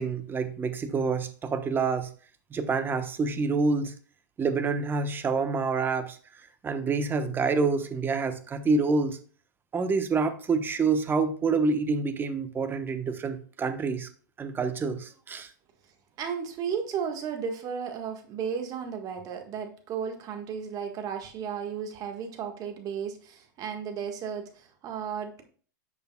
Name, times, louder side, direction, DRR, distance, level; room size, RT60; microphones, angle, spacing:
voice 1, 0.0-2.1 2.5-3.9 4.4-6.2 6.6-9.2 9.7-14.1 14.4-15.5, right 4 dB, 20° right, 8 dB, 1.0 m, -27 dB
voice 2, 16.2-25.4, right 7 dB, 35° right, 5 dB, 1.6 m, -34 dB
10.5 x 6.7 x 2.3 m, 0.42 s
hypercardioid pair, 115°, 10 cm